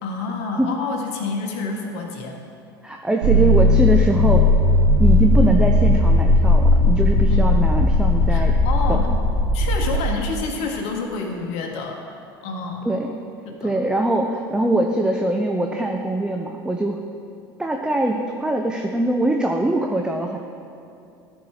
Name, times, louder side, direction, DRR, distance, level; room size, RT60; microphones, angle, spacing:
voice 1, 0.0-2.4 7.1-7.9 8.3-9.1 9.5-12.0 12.4-12.9 13.4-13.7, left 4 dB, 60° left, 2 dB, 1.5 m, -29 dB
voice 2, 2.8-4.5 5.0-8.5 8.9-9.0 12.8-13.1 13.6-17.0 17.6-20.4, right 2 dB, 5° right, 2 dB, 0.7 m, -22 dB
sound 1, 3.2-10.1, left 2 dB, 80° right, 1.8 m, -17 dB
14.0 x 4.6 x 4.9 m, 2.6 s
hypercardioid pair, 75°, 13 cm